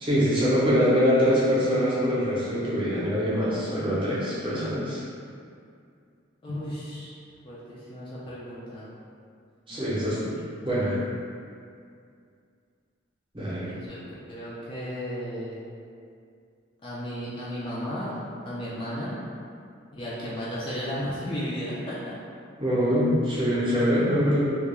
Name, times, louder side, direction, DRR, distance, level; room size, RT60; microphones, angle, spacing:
voice 1, 0.0-5.0 9.7-10.2 10.6-11.0 13.3-13.7 22.6-24.6, equal, 25° right, -10 dB, 0.7 m, -24 dB
voice 2, 6.4-7.1 7.4-8.9 9.7-10.1 13.6-14.0 14.3-15.6 16.8-19.2 19.9-22.1, equal, 25° left, -8 dB, 0.3 m, -34 dB
2.3 x 2.2 x 2.9 m, 2.3 s
head